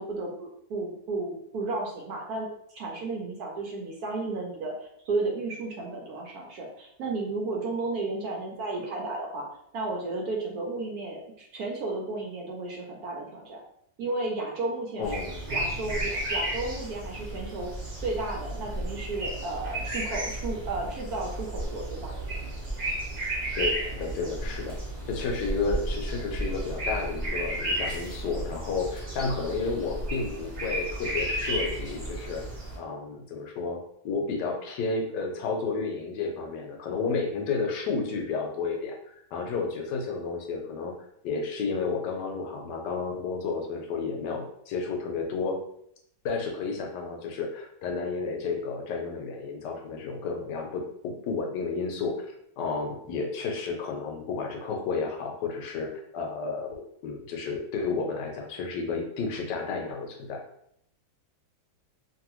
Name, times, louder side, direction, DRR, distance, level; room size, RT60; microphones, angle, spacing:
voice 1, 0.0-4.7 5.0-9.5 9.7-13.6 14.0-15.1 15.5-17.7 18.0-22.1, right 2 dB, 70° right, -1 dB, 1.0 m, -33 dB
voice 2, 15.0-15.4 23.5-24.8 25.1-32.4 32.8-40.9 41.2-45.6 46.2-52.3 52.6-56.7 57.0-60.4, left 4 dB, 75° left, 2 dB, 1.2 m, -31 dB
sound 1, 15.0-32.8, right 1 dB, 50° right, 0.5 m, -33 dB
2.8 x 2.6 x 2.9 m, 0.72 s
omnidirectional pair, 1.9 m